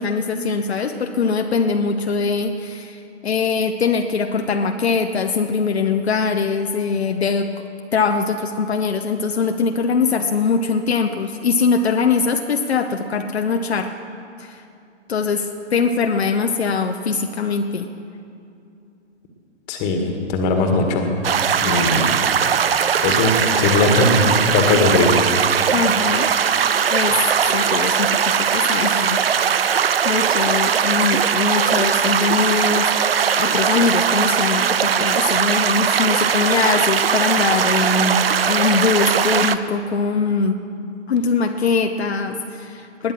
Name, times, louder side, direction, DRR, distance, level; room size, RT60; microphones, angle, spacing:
voice 1, 0.0-7.5 7.9-13.9 14.4-14.6 15.1-17.9 25.7-26.3 26.9-27.2 27.5-29.2 30.0-32.9 33.4-40.6 41.1-43.1, left 5 dB, 60° left, 5 dB, 0.9 m, -22 dB
voice 2, 19.7-21.0 21.6-22.2 23.0-25.2, left 2 dB, 20° left, 3 dB, 1.8 m, -19 dB
sound 1, 21.2-39.6, right 7 dB, 50° right, 0.7 m, -19 dB
20.0 x 10.5 x 6.2 m, 2.6 s
figure-of-eight pair, 130°, 36 cm